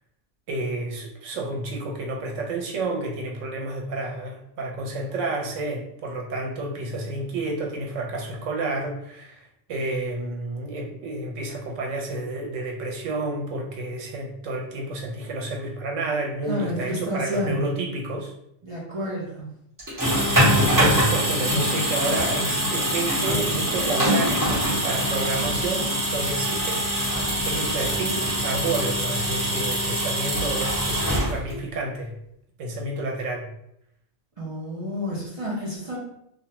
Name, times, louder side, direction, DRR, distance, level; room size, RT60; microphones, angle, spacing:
voice 1, 0.5-18.3 19.9-20.1 20.4-26.9 27.5-32.1 32.6-33.4, right 2 dB, 85° right, 0 dB, 1.0 m, -30 dB
voice 2, 16.5-17.7 18.6-19.6 34.4-36.0, equal, 40° right, -7 dB, 0.5 m, -30 dB
sound 1, 19.8-31.7, equal, 15° right, 0.9 m, -24 dB
2.4 x 2.1 x 2.8 m, 0.75 s
omnidirectional pair, 1.3 m